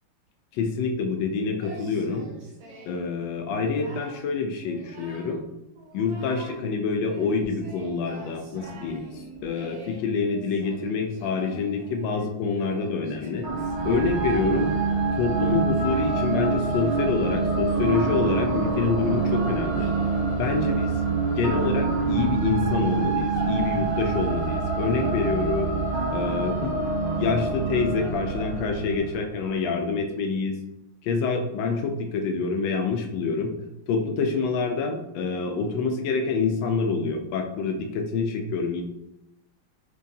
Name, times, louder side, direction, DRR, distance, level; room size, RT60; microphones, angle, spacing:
voice 1, 0.5-2.3 2.8-5.4 5.9-9.0 9.4-13.5 13.8-14.7 15.2-19.9 20.4-20.9 21.2-25.7 26.1-26.7 27.2-30.5 31.0-33.5 33.9-38.8, left 4 dB, 75° left, 4 dB, 1.2 m, -26 dB
Singing, 1.6-3.1 3.5-4.3 4.6-5.4 5.8-6.6 7.1-21.6, right 2 dB, 70° right, 0.9 m, -45 dB
sound 1, 13.4-29.6, right 4 dB, 90° right, 0.6 m, -26 dB
4.6 x 3.0 x 2.6 m, 0.89 s
omnidirectional pair, 2.3 m